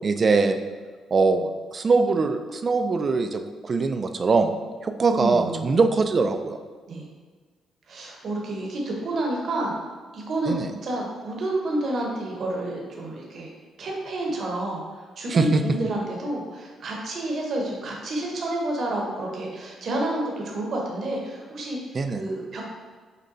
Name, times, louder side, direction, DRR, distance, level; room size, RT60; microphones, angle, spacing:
voice 1, 0.0-0.6 1.1-4.5 4.8-6.6 10.5-10.7 15.3-15.6 21.9-22.2, right 4 dB, 40° right, 8 dB, 0.3 m, -22 dB
voice 2, 5.1-5.7 6.9-7.1 7.9-9.7 10.1-13.5 13.8-14.8 15.2-22.6, right 2 dB, 60° right, -1 dB, 0.9 m, -29 dB
6.4 x 2.2 x 2.7 m, 1.4 s
cardioid pair, 90°, 0 cm